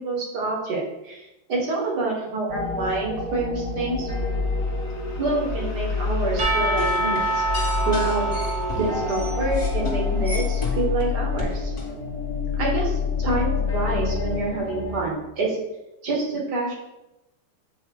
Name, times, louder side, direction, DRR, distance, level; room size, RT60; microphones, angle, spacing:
voice 1, 0.0-4.1 5.2-8.3 8.7-11.7 12.6-15.6 16.0-16.8, right 3 dB, 55° right, -2 dB, 2.1 m, -27 dB
sound 1, 2.5-15.0, left 4 dB, 50° left, 1.3 m, -27 dB
sound 2, 6.4-11.0 11.4-11.9, left 3 dB, 25° left, 2.3 m, -33 dB
Percussion / Church bell, 6.4-10.2, right 2 dB, 75° right, 3.0 m, -27 dB
9.5 x 3.2 x 4.7 m, 0.98 s
omnidirectional pair, 2.1 m